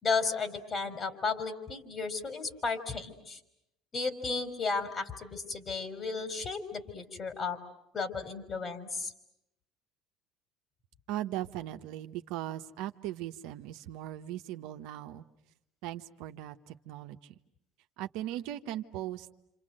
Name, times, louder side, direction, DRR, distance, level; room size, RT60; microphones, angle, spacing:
voice 1, 0.0-3.4 3.9-7.6 7.9-9.1, left 4 dB, 35° left, 9 dB, 4.0 m, -34 dB
voice 2, 11.1-15.2 15.8-17.4 18.0-19.3, right 13 dB, 75° right, 6 dB, 1.1 m, -39 dB
28.0 x 28.0 x 7.7 m, 0.83 s
supercardioid pair, 85°, 0 cm